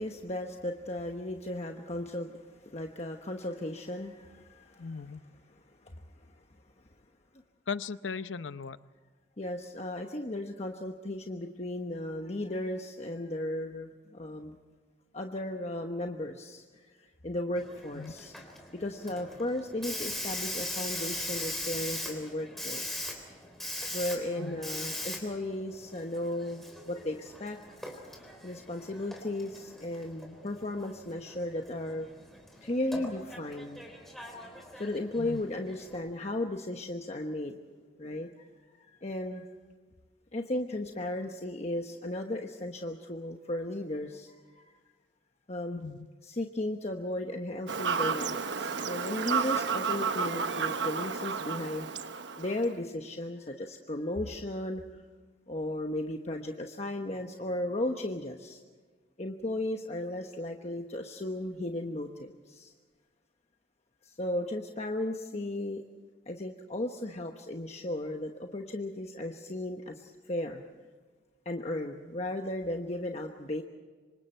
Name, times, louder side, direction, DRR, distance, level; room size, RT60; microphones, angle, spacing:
voice 1, 0.0-6.3 9.4-14.6 15.1-18.3 18.7-22.8 23.9-27.7 27.9-28.1 28.4-32.1 32.6-33.8 34.7-37.6 38.0-38.5 38.9-39.5 40.3-44.8 45.5-45.8 46.2-51.9 52.4-54.8 55.5-58.6 59.2-62.7 64.0-65.8 66.3-70.6 71.4-73.6, left 1 dB, 35° left, 3 dB, 1.1 m, -35 dB
voice 2, 4.8-5.2 7.7-8.8 18.0-18.1 24.4-24.6 35.2-35.4 45.7-46.0, left 5 dB, 90° left, 14 dB, 0.7 m, -37 dB
Hiss, 17.6-36.0, left 1 dB, ahead, 3.6 m, -41 dB
Fowl / Bird vocalization bird call bird song, 47.7-52.7, right 5 dB, 75° right, 1.1 m, -32 dB
27.0 x 25.0 x 4.5 m, 1.5 s
head